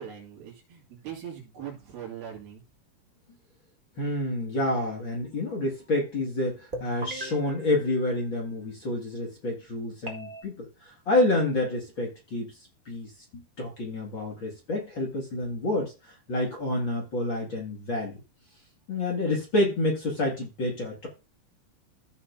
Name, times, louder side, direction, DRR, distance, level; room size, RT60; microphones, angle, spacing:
voice 1, 0.0-2.6, right 9 dB, 75° right, -1 dB, 4.2 m, -41 dB
voice 2, 4.0-12.5 12.9-18.2 18.9-21.1, left 2 dB, 40° left, -2 dB, 2.3 m, -28 dB
sound 1, 6.7-8.9 10.1-10.4, right 1 dB, 90° right, 0.4 m, -40 dB
15.0 x 5.8 x 2.7 m, 0.29 s
omnidirectional pair, 4.3 m